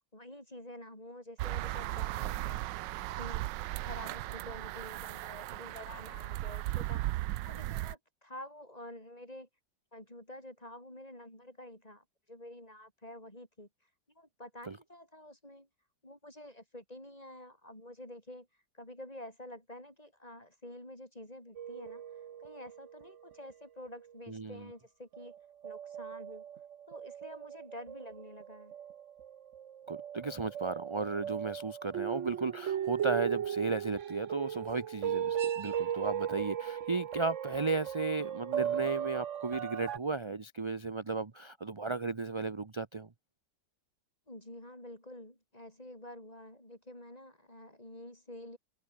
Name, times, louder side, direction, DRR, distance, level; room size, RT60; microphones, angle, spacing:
voice 1, 0.1-2.6 3.2-7.1 7.4-9.5 9.9-13.7 14.1-15.7 16.0-18.5 18.7-22.0 22.4-25.3 25.6-26.5 26.9-28.7 44.3-48.6, left 1 dB, 20° left, 8.2 m, -49 dB
sound 1, 1.4-8.0, right 16 dB, 90° right, 1.3 m, -36 dB
sound 2, 21.6-23.3 23.9-24.0 25.1-40.0, right 9 dB, 50° right, 1.0 m, -37 dB
voice 2, 24.3-24.7 29.9-43.1, right 3 dB, 30° right, 0.5 m, -35 dB
omnidirectional pair, 1.9 m